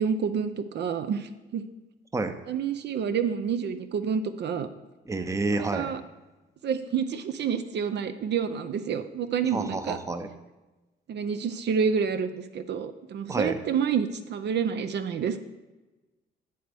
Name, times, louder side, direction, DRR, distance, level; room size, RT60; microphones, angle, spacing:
voice 1, 0.0-1.6 2.5-4.7 5.5-6.0 6.6-10.0 11.1-15.4, right 7 dB, 60° right, 9 dB, 0.5 m, -28 dB
voice 2, 5.1-5.9 9.5-10.3 13.3-13.6, right 3 dB, 15° right, 9 dB, 0.6 m, -29 dB
8.0 x 7.8 x 3.4 m, 1.1 s
cardioid pair, 90°, 20 cm